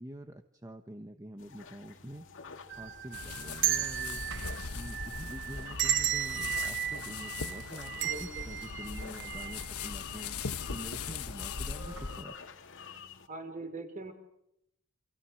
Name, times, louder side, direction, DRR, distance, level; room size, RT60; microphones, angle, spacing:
voice 1, 0.0-2.3 2.8-4.2 4.7-10.4 10.7-12.4, right 1 dB, 15° right, 7 dB, 1.2 m, -46 dB
sound 1, 1.4-13.3, left 6 dB, 60° left, 2.5 m, -48 dB
sound 2, 2.7-9.9 10.2-10.3 11.2-11.5 11.9-12.1, right 11 dB, 60° right, 1.2 m, -35 dB
sound 3, 3.1-12.2, left 5 dB, 85° left, 1.2 m, -40 dB
voice 2, 7.9-8.5 13.3-14.1, right 2 dB, 35° right, 6 dB, 5.3 m, -42 dB
30.0 x 28.0 x 6.5 m, 0.78 s
head